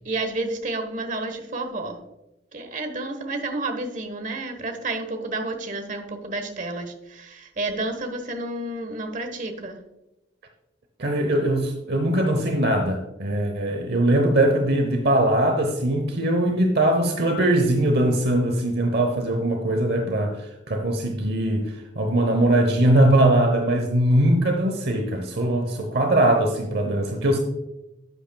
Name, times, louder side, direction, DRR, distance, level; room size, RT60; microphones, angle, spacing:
voice 1, 0.0-2.0 2.5-9.8, right 2 dB, 45° right, 6 dB, 1.2 m, -30 dB
voice 2, 11.0-27.4, right 1 dB, 60° right, 5 dB, 0.9 m, -21 dB
11.0 x 7.9 x 2.3 m, 0.93 s
head